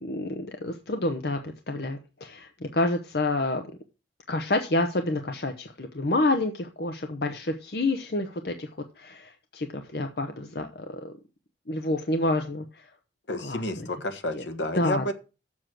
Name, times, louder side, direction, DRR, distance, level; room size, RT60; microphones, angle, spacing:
voice 1, 0.0-3.6 4.3-8.7 9.0-11.1 11.7-12.8 13.4-13.9 14.3-14.4 14.8-15.1, left 2 dB, 55° left, 5 dB, 0.9 m, -28 dB
voice 2, 13.3-15.1, left 1 dB, 75° left, 8 dB, 1.4 m, -30 dB
7.3 x 6.3 x 7.5 m, 0.32 s
head